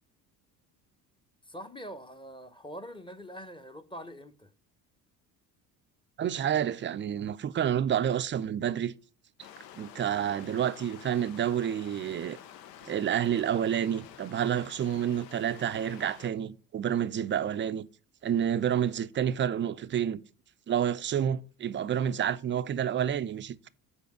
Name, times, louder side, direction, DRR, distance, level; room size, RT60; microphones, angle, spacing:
voice 1, 1.5-4.5, equal, 10° left, 0.7 m, -44 dB
voice 2, 6.2-8.9 9.8-12.4 12.9-17.9 18.2-20.2 20.7-23.7, right 9 dB, 25° right, 0.4 m, -29 dB
sound 1, 9.4-16.3, left 10 dB, 80° left, 0.7 m, -49 dB
7.0 x 4.6 x 6.0 m
hypercardioid pair, 60°, 49 cm